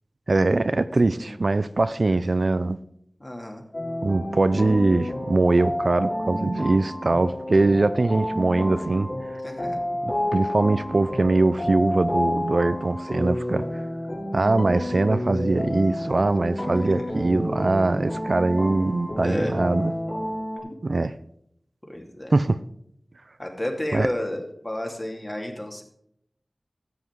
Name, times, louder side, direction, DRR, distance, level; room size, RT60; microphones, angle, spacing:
voice 1, 0.3-2.8 4.0-9.1 10.0-13.6 14.3-19.9 20.8-21.1 22.3-22.6 23.9-24.1, right 2 dB, 65° right, 13 dB, 0.5 m, -22 dB
voice 2, 3.2-3.6 9.4-9.8 16.7-17.0 19.2-19.5 20.6-20.7 21.9-22.3 23.4-25.8, left 1 dB, 30° left, 2 dB, 2.6 m, -31 dB
sound 1, 3.7-20.6, left 1 dB, 50° left, 4.6 m, -30 dB
13.5 x 7.9 x 4.7 m, 0.72 s
wide cardioid pair, 60°, 0 cm